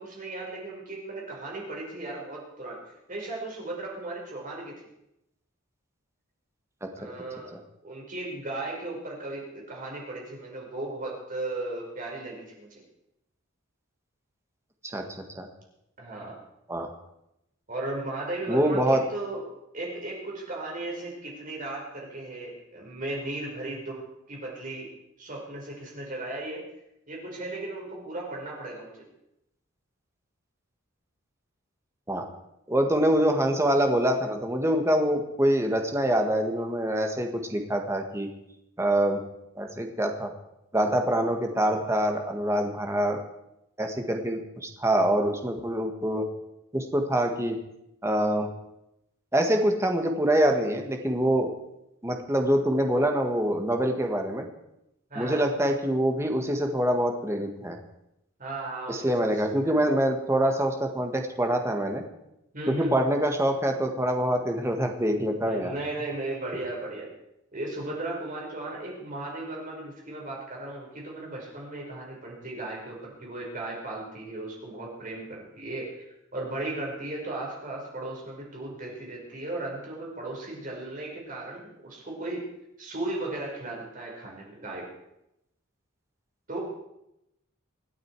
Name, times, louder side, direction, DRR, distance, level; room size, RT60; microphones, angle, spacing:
voice 1, 0.0-2.8 3.1-4.8 6.9-7.5 7.8-12.8 16.0-16.3 17.7-19.4 19.7-24.0 24.3-24.9 25.2-26.6 27.1-29.0 55.1-55.5 58.4-59.8 62.5-63.0 65.4-67.1 67.5-76.1 76.3-82.5 82.8-84.8 86.5-86.6, right 2 dB, 40° right, -2 dB, 5.3 m, -36 dB
voice 2, 18.5-19.0 32.1-32.2 32.7-38.3 38.8-39.2 39.5-40.3 40.7-43.2 43.8-46.2 46.7-47.6 48.0-48.5 49.3-51.5 52.0-54.4 55.1-57.8 58.9-62.0 62.7-65.7, right 1 dB, 15° right, 4 dB, 1.6 m, -25 dB
26.0 x 9.1 x 4.8 m, 0.85 s
head